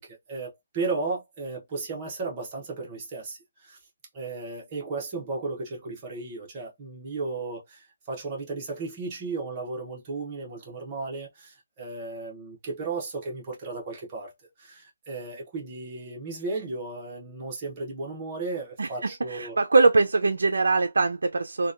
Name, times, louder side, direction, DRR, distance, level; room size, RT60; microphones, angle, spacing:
voice 1, 0.0-3.8 4.1-14.3 14.6-19.6, right 3 dB, 15° right, 0.7 m, -35 dB
voice 2, 19.3-21.7, right 3 dB, 85° right, 0.3 m, -22 dB
2.8 x 2.1 x 2.4 m
hypercardioid pair, 180°, 0 cm